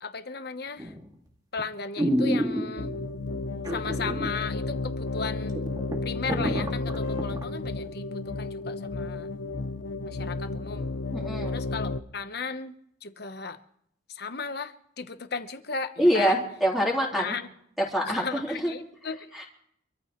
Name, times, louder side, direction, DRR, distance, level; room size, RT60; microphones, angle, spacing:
voice 1, 0.0-0.9 1.5-2.9 3.7-5.6 6.0-9.3 10.1-10.9 11.5-12.7 13.0-13.6 14.1-16.4 17.1-17.4 18.0-19.3, left 4 dB, 55° left, 9 dB, 1.1 m, -35 dB
sound 1, 0.8-1.1 1.6-1.7 2.0-3.0 3.6-4.3 4.6-4.7 5.2-5.3 5.6-7.4 7.9-8.0, equal, 20° right, 2.3 m, -28 dB
sound 2, 2.8-12.0, left 3 dB, 85° left, 0.8 m, -32 dB
voice 2, 11.1-11.5 16.0-17.4 17.9-18.7 19.3-19.4, equal, ahead, -3 dB, 3.4 m, -25 dB
26.0 x 14.0 x 3.2 m, 0.69 s
head